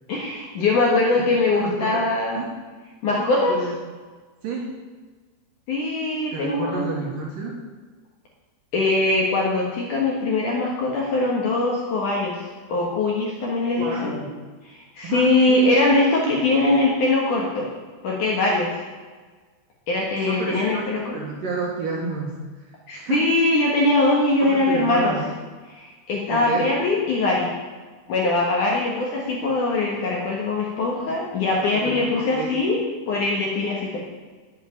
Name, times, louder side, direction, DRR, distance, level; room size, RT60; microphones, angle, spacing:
voice 1, 0.1-2.4 3.0-3.6 5.7-6.9 8.7-14.1 14.7-17.7 18.0-18.8 19.9-21.1 22.9-25.1 25.7-27.5 28.1-32.8 33.1-34.0, left 2 dB, 60° left, -2 dB, 2.2 m, -22 dB
voice 2, 1.5-2.1 2.4-2.5 3.1-3.8 4.4-4.7 6.3-7.6 13.8-14.3 15.0-15.7 20.2-23.2 24.4-25.2 26.3-26.7 31.7-32.5, right 3 dB, 60° right, -2 dB, 2.5 m, -30 dB
9.3 x 8.3 x 9.0 m, 1.4 s
omnidirectional pair, 5.4 m